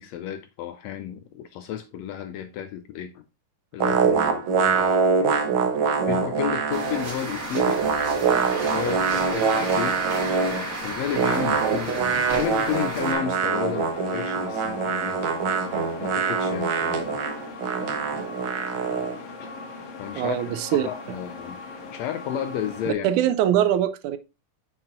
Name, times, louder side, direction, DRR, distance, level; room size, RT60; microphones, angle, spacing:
voice 1, 0.0-3.2 3.7-5.0 6.1-7.8 8.6-10.0 10.4-15.2 16.0-17.2 19.4-19.5 20.0-21.6 21.9-23.1, left 9 dB, 80° left, 1.6 m, -32 dB
sound 1, 3.8-7.1 7.3-10.7 11.1-19.2, right 5 dB, 65° right, 1.3 m, -24 dB
sound 2, 6.7-13.1, right 2 dB, 30° right, 1.8 m, -32 dB
sound 3, 12.9-22.9, left 3 dB, 60° left, 2.1 m, -39 dB
voice 2, 20.2-20.9 22.9-24.2, right 11 dB, 80° right, 2.0 m, -22 dB
8.2 x 5.9 x 2.4 m
omnidirectional pair, 3.5 m